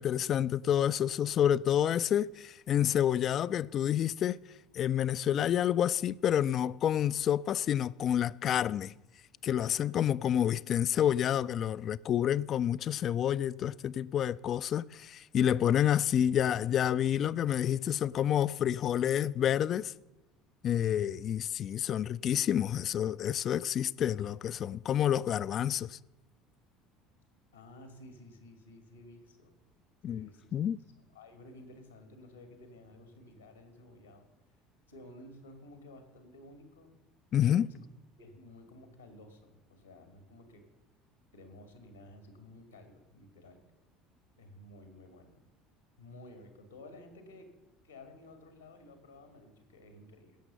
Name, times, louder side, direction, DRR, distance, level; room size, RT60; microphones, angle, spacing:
voice 1, 0.0-4.4 4.7-8.9 9.4-19.9 20.6-26.0 30.0-30.8 37.3-37.7, left 10 dB, 45° left, 0.3 m, -29 dB
voice 2, 27.5-29.5 30.1-30.6 30.9-34.3 34.9-36.9 37.4-37.8 38.2-40.6 41.3-43.6 44.4-45.4 46.0-47.5 47.8-50.4, left 1 dB, 90° left, 1.9 m, -53 dB
16.5 x 6.7 x 6.6 m
figure-of-eight pair, 65°, 0 cm